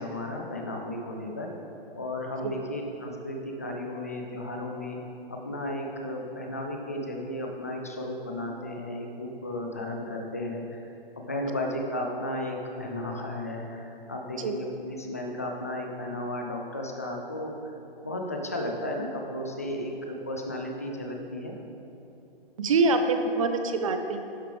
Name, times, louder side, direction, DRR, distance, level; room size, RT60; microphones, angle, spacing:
voice 1, 0.0-1.5 1.9-5.0 5.3-10.8 11.2-17.7 18.0-21.5, left 1 dB, 15° left, 1 dB, 0.3 m, -34 dB
voice 2, 22.6-24.3, right 3 dB, 35° right, 7 dB, 0.6 m, -25 dB
11.0 x 6.7 x 3.3 m, 2.9 s
hypercardioid pair, 150°, 30 cm